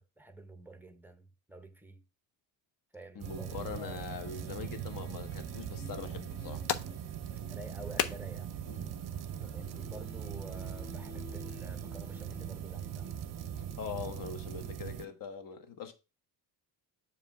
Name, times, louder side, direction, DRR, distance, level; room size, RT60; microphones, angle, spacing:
voice 1, 0.0-2.0 2.9-3.9 7.5-8.5 9.4-13.1, right 1 dB, 5° right, 0.6 m, -50 dB
voice 2, 3.1-6.7 8.7-8.9 13.8-15.9, left 6 dB, 50° left, 1.2 m, -42 dB
sound 1, 3.2-15.1, left 5 dB, 25° left, 1.2 m, -54 dB
sound 2, 3.2-15.0, right 10 dB, 50° right, 0.5 m, -41 dB
sound 3, 6.2-11.2, left 9 dB, 80° left, 0.8 m, -41 dB
7.3 x 2.8 x 5.8 m
cardioid pair, 130°, 42 cm